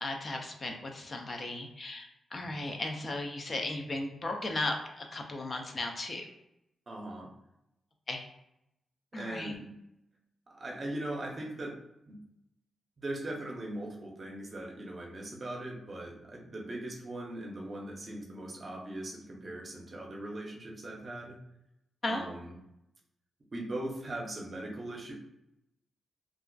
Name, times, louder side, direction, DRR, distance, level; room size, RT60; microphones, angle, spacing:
voice 1, 0.0-6.3 8.1-8.2 9.1-9.5 22.0-22.3, left 2 dB, 35° left, 3 dB, 0.4 m, -36 dB
voice 2, 6.9-7.3 9.1-9.7 10.5-11.8 12.1-12.2 13.0-21.4 22.0-22.5 23.5-25.1, right 1 dB, 40° right, -1 dB, 0.6 m, -40 dB
2.4 x 2.3 x 2.2 m, 0.83 s
cardioid pair, 110°, 0 cm